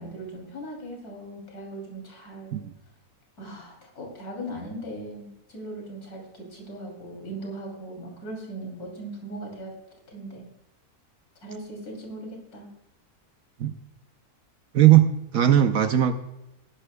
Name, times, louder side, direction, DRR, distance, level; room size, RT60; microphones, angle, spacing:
voice 1, 0.0-2.6 3.4-9.7 10.1-10.5 11.4-12.7, right 1 dB, 70° left, 1 dB, 3.6 m, -39 dB
voice 2, 14.7-16.2, right 12 dB, 70° right, 8 dB, 1.1 m, -19 dB
18.5 x 11.0 x 2.2 m, 0.92 s
omnidirectional pair, 1.6 m